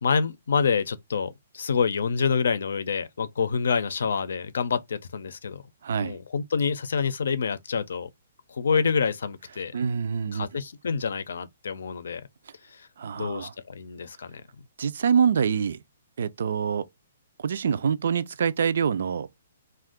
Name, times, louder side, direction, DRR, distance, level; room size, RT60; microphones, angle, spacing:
voice 1, 0.0-5.6 6.0-8.1 8.5-9.8 10.3-12.3 12.6-12.9 13.1-14.6, left 5 dB, 80° left, 0.5 m, -27 dB
voice 2, 5.8-6.2 9.7-10.5 13.0-13.5 14.8-15.8 16.2-16.9 17.4-19.3, right 7 dB, 65° right, 0.4 m, -25 dB
2.6 x 2.3 x 3.5 m
hypercardioid pair, 170°, 0 cm